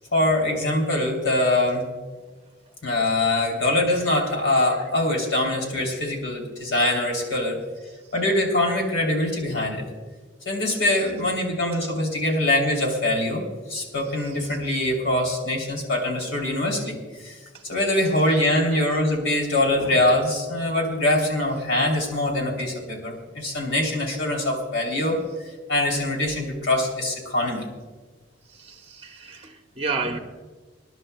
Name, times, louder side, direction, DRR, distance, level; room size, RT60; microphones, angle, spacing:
voice 1, 0.1-1.9 2.8-7.6 8.1-9.9 10.4-13.4 13.7-17.0 17.2-17.4 17.6-25.2 25.7-27.7, left 1 dB, 85° left, 0 dB, 3.1 m, -23 dB
voice 2, 28.5-30.2, right 4 dB, 30° right, 4 dB, 0.8 m, -31 dB
27.0 x 11.0 x 2.2 m, 1.4 s
head